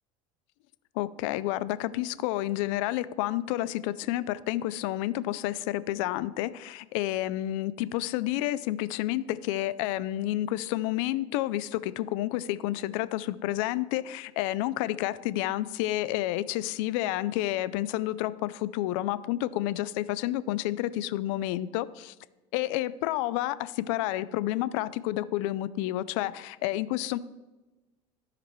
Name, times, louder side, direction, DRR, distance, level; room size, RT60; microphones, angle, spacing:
voice 1, 1.0-22.1 22.5-27.2, left 15 dB, 80° left, 16 dB, 0.4 m, -30 dB
15.0 x 5.0 x 3.1 m, 1.1 s
supercardioid pair, 110°, 17 cm